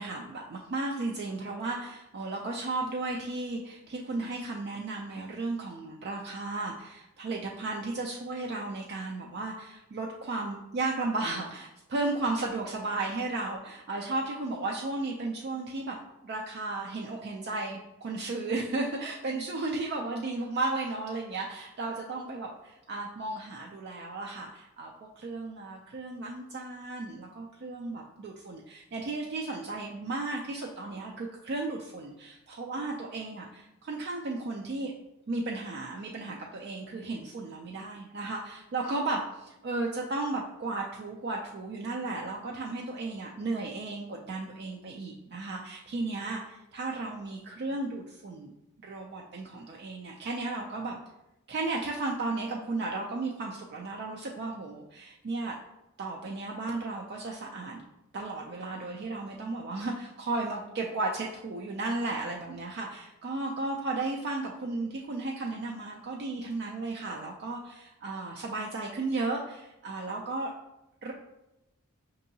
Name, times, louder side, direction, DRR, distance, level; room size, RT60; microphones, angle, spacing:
voice 1, 0.0-16.0 16.2-34.9 35.3-48.5 48.8-51.0 51.5-55.5 56.0-57.8 58.1-70.5 71.0-71.1, right 2 dB, 45° right, -1 dB, 0.3 m, -34 dB
5.3 x 2.7 x 2.6 m, 0.92 s
head